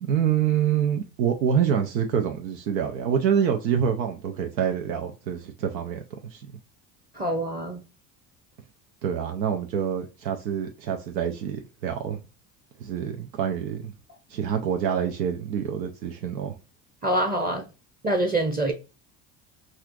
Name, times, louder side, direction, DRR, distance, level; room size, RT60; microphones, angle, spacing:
voice 1, 0.0-6.0 6.3-6.5 9.0-12.2 12.8-13.9 14.3-16.6, right 8 dB, 85° right, 0.7 m, -26 dB
voice 2, 7.2-7.8 17.0-17.6 18.0-18.7, right 1 dB, 20° right, 0.7 m, -25 dB
4.2 x 2.4 x 2.4 m
hypercardioid pair, 70°, 49 cm